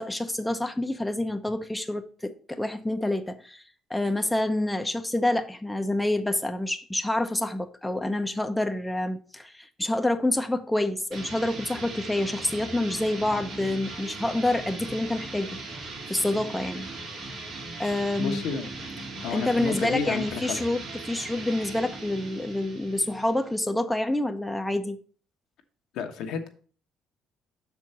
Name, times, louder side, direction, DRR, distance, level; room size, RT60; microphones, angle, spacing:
voice 1, 0.0-3.6 3.9-15.6 16.1-16.9 17.8-18.4 19.3-25.0, left 1 dB, 5° left, 0.7 m, -27 dB
sound 1, 11.1-23.6, right 3 dB, 65° right, 2.6 m, -39 dB
voice 2, 18.2-18.6 19.2-20.6 25.9-26.5, left 6 dB, 75° left, 1.0 m, -31 dB
6.4 x 4.7 x 5.4 m
supercardioid pair, 75°, 0 cm